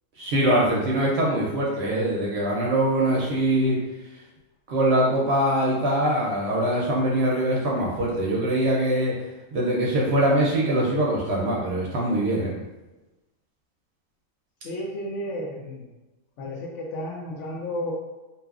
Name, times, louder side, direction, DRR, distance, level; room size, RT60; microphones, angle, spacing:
voice 1, 0.2-3.8 4.7-9.1 9.5-12.5, right 1 dB, 65° right, -4 dB, 0.7 m, -23 dB
voice 2, 14.6-15.9 16.4-17.9, left 1 dB, 70° left, -1 dB, 0.8 m, -32 dB
2.8 x 2.3 x 2.3 m, 1.1 s
omnidirectional pair, 1.4 m